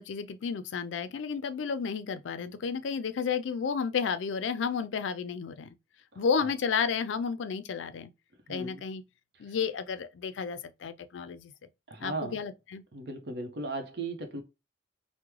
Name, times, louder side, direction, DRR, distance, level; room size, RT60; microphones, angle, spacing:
voice 1, 0.0-5.7 6.2-8.1 8.5-9.0 9.4-11.5 12.0-12.8, left 6 dB, 85° left, 0.4 m, -32 dB
voice 2, 6.1-6.5 8.5-8.8 9.4-9.5 11.9-12.4 12.9-14.4, right 2 dB, 60° right, 0.8 m, -37 dB
3.5 x 2.1 x 3.1 m
head